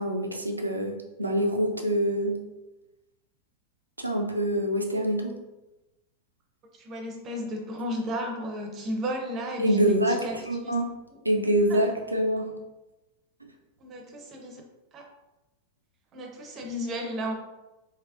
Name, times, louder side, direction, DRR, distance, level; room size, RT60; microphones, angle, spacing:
voice 1, 0.0-2.4 4.0-5.4 9.6-11.0 11.2-12.5, equal, 85° right, 3 dB, 0.4 m, -25 dB
voice 2, 6.8-10.4 10.6-10.7 11.7-11.8 13.8-14.6 14.9-15.1 16.1-17.3, equal, 30° right, 2 dB, 0.6 m, -34 dB
3.2 x 2.8 x 2.4 m, 1.0 s
figure-of-eight pair, 90°, 0 cm